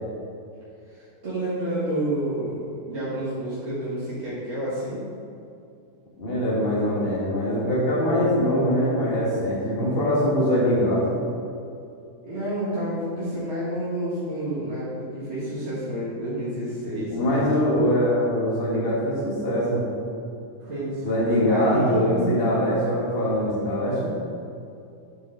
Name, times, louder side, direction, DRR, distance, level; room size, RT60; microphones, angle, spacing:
voice 1, 0.9-5.0 12.2-17.5 20.6-22.4, right 1 dB, 45° right, -9 dB, 2.0 m, -29 dB
voice 2, 6.2-11.2 17.1-19.8 21.0-24.1, equal, 40° left, -6 dB, 2.0 m, -23 dB
8.2 x 7.2 x 3.9 m, 2.6 s
omnidirectional pair, 1.6 m